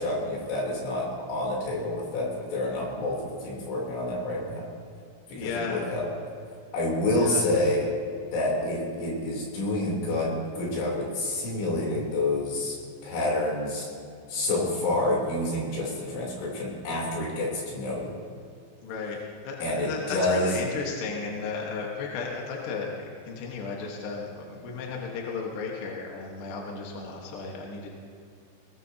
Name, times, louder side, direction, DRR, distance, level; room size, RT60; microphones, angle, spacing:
voice 1, 0.0-4.7 5.3-6.1 6.7-7.9 8.3-12.8 13.0-13.9 14.3-18.2 19.6-20.5, left 2 dB, 90° left, -3 dB, 6.0 m, -28 dB
voice 2, 5.3-5.8 7.1-7.4 18.8-19.2 19.4-27.9, left 4 dB, 70° left, -1 dB, 3.4 m, -34 dB
20.0 x 19.5 x 2.9 m, 2.4 s
omnidirectional pair, 5.3 m